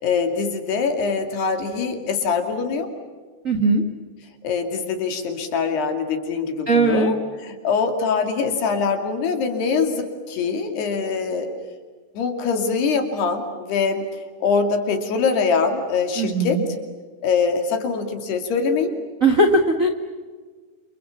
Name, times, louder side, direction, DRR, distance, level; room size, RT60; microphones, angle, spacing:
voice 1, 0.0-2.9 4.4-7.2 7.4-11.5 12.1-14.0 14.4-16.6 17.2-18.9, left 5 dB, 70° left, 5 dB, 4.6 m, -23 dB
voice 2, 3.4-3.8 6.7-7.1 16.2-16.6 19.2-19.9, right 2 dB, 45° right, 3 dB, 1.0 m, -18 dB
29.0 x 28.0 x 7.2 m, 1.5 s
omnidirectional pair, 4.9 m